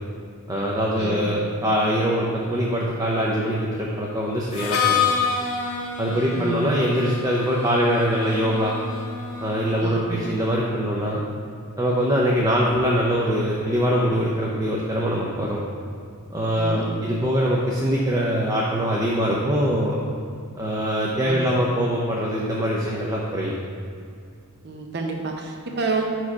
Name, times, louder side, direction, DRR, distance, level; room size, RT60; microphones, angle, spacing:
voice 1, 0.5-5.0 6.0-8.8 9.4-11.2 11.8-15.6 16.3-20.0 20.6-23.5, equal, 15° right, -4 dB, 0.5 m, -23 dB
voice 2, 1.0-1.5 6.1-6.7 9.8-10.2 16.6-17.1 21.2-21.5 24.6-26.0, right 3 dB, 50° right, 2 dB, 0.7 m, -29 dB
Harmonica, 4.5-10.3, left 6 dB, 70° left, 0.8 m, -28 dB
5.9 x 4.6 x 4.8 m, 2.4 s
head